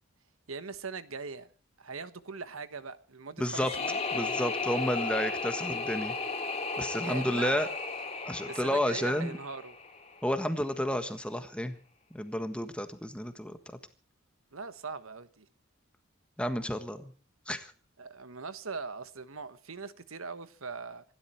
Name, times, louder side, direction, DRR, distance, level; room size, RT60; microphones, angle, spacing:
voice 1, 0.5-1.5 1.8-4.0 7.0-7.6 8.4-9.8 14.5-15.5 18.0-21.0, right 4 dB, 75° right, 1.3 m, -41 dB
sound 1, 3.4-10.4, left 4 dB, 30° left, 2.9 m, -35 dB
voice 2, 3.4-3.7 4.1-6.1 6.8-7.7 8.2-9.4 10.2-11.8 12.1-13.6 16.4-17.1 17.5-17.7, equal, 5° left, 1.4 m, -31 dB
27.0 x 12.0 x 4.5 m
head